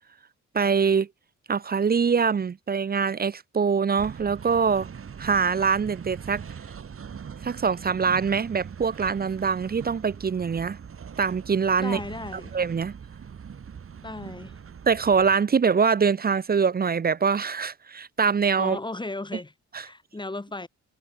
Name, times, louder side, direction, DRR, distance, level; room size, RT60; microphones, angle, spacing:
voice 1, 0.5-1.1 1.5-4.9 5.2-6.4 7.4-10.8 11.2-12.0 12.3-13.0 14.9-18.8 19.7-19.9, right 6 dB, 30° right, 0.9 m, -24 dB
sound 1, 4.0-15.4, right 7 dB, 45° right, 5.2 m, -41 dB
voice 2, 11.8-12.6 14.0-14.6 18.6-20.7, left 2 dB, 15° left, 7.7 m, -35 dB
cardioid pair, 90°, 30 cm